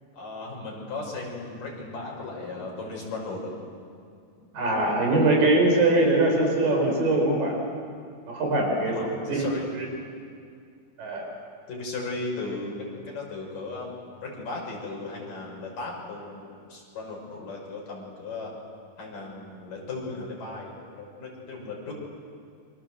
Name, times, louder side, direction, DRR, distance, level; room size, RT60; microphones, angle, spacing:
voice 1, 0.1-3.6 8.9-9.7 11.7-13.9 14.2-18.5 19.0-21.9, left 3 dB, 80° left, -1 dB, 7.6 m, -36 dB
voice 2, 4.5-7.6 8.3-8.9 9.3-9.4 11.0-11.3, right 2 dB, 90° right, 1 dB, 6.6 m, -22 dB
28.0 x 25.5 x 7.7 m, 2.3 s
omnidirectional pair, 3.8 m